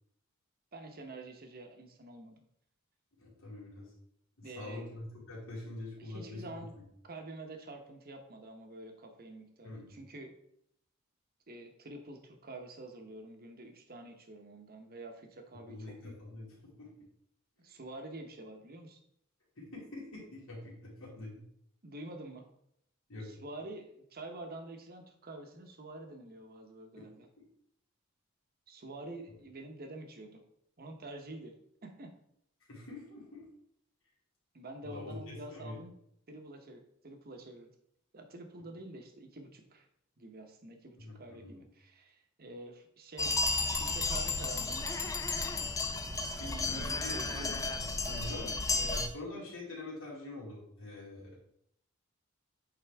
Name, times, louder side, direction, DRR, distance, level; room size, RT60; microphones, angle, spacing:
voice 1, 0.7-2.4 4.4-4.9 6.0-6.7 7.0-10.3 11.5-16.1 17.6-19.0 21.8-22.5 23.2-27.3 28.7-30.4 30.8-31.5 31.8-32.1 34.5-35.9 36.3-37.7 38.1-39.9 40.2-43.4 43.8-45.1 46.4-47.5, right 2 dB, 45° right, 5 dB, 1.0 m, -47 dB
voice 2, 3.2-3.9 4.4-6.7 9.6-9.9 15.7-16.9 19.6-21.4 23.1-23.3 27.0-27.1 27.4-27.5 32.7-33.5 34.8-35.8 41.0-41.6 46.4-51.4, left 2 dB, 70° left, -7 dB, 2.6 m, -45 dB
sound 1, 43.2-49.1, left 3 dB, 15° left, 0.4 m, -33 dB
8.5 x 3.9 x 3.5 m, 0.72 s
head